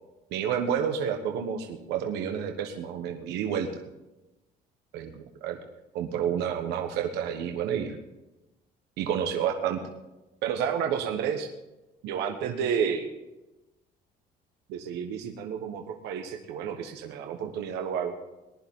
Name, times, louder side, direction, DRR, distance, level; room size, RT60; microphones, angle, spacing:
voice 1, 0.3-3.7 4.9-5.1 5.4-5.6 5.9-8.0 9.0-9.8 10.4-11.5 12.0-13.1 14.7-18.2, right 8 dB, 90° right, 4 dB, 1.3 m, -30 dB
19.5 x 11.0 x 3.8 m, 0.99 s
cardioid pair, 110°, 17 cm